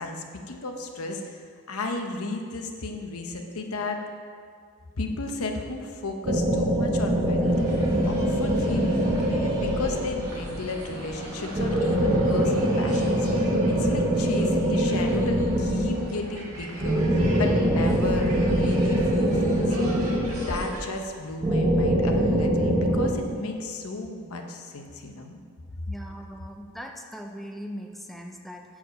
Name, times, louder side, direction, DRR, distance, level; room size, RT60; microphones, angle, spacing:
voice 1, 0.0-1.4 1.7-4.0 5.0-25.4, left 2 dB, 80° left, 4 dB, 0.8 m, -34 dB
sound 1, 6.2-10.4 11.5-16.2 16.8-20.8 21.4-23.1, right 1 dB, 25° right, 0.8 m, -23 dB
sound 2, 7.4-20.8, right 1 dB, 80° right, 1.6 m, -38 dB
voice 2, 25.9-28.8, equal, ahead, 2 dB, 0.4 m, -40 dB
8.3 x 4.8 x 5.1 m, 2.1 s
head